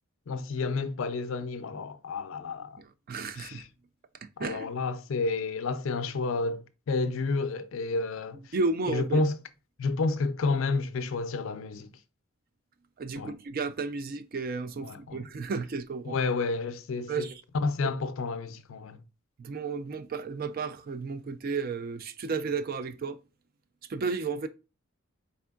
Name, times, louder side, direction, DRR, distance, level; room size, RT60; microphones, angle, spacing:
voice 1, 0.3-2.8 3.4-3.7 4.4-8.4 8.9-9.4 9.8-11.9 13.1-13.4 14.8-15.3 16.0-17.3 17.5-19.0, left 3 dB, 65° left, 0.4 m, -30 dB
voice 2, 3.1-3.6 4.4-4.7 8.5-9.2 13.0-16.2 17.1-17.3 17.8-17.9 19.4-23.2 23.9-24.5, right 4 dB, 45° right, 0.3 m, -32 dB
4.4 x 3.4 x 2.3 m
head